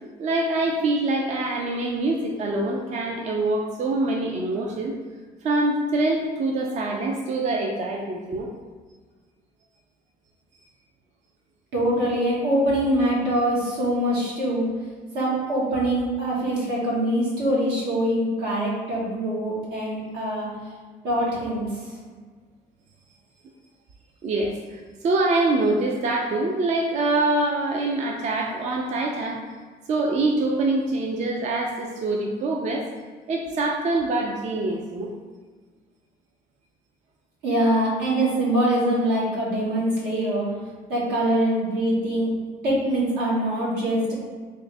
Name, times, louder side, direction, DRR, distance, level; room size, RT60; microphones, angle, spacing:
voice 1, 0.2-4.9 5.4-8.5 24.2-29.4 29.9-32.9 33.3-35.1, right 2 dB, 45° right, 1 dB, 0.4 m, -25 dB
voice 2, 11.7-14.7 15.1-20.5 21.0-21.8 37.4-40.4 40.9-42.3 42.6-44.1, right 1 dB, 85° right, -6 dB, 1.4 m, -23 dB
3.7 x 2.6 x 3.3 m, 1.5 s
cardioid pair, 110°, 17 cm